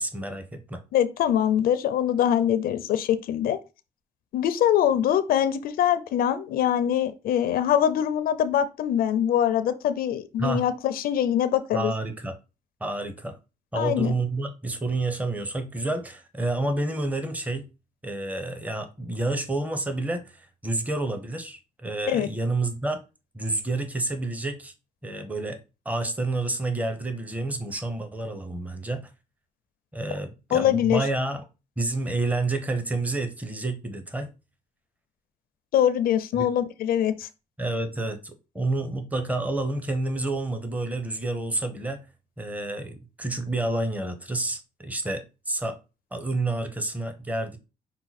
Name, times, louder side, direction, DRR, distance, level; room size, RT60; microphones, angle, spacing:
voice 1, 0.0-0.8 10.4-10.7 11.7-12.4 12.8-13.4 13.7-17.7 18.0-23.0 23.3-24.7 25.0-25.6 25.8-29.1 29.9-31.4 31.8-34.3 36.4-36.5 37.6-42.0 42.4-45.8 46.1-47.6, right 2 dB, 10° right, 0.9 m, -29 dB
voice 2, 0.9-3.6 4.3-11.9 13.7-14.1 22.1-22.3 30.5-31.1 35.7-37.3, left 10 dB, 80° left, 0.5 m, -23 dB
5.7 x 2.3 x 4.1 m
cardioid pair, 90°, 15 cm